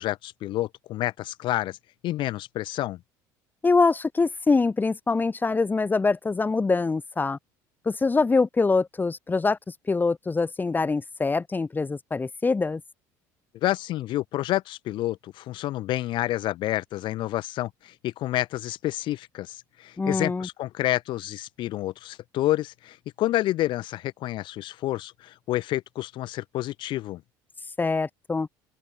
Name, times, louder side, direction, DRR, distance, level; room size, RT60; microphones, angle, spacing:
voice 1, 0.0-1.8 2.0-3.0 13.5-27.2, left 15 dB, 60° left, 2.1 m, -29 dB
voice 2, 3.6-7.4 7.9-12.8 20.0-20.5 27.8-28.5, left 4 dB, 20° left, 3.7 m, -24 dB
open air
supercardioid pair, 90°, 9 cm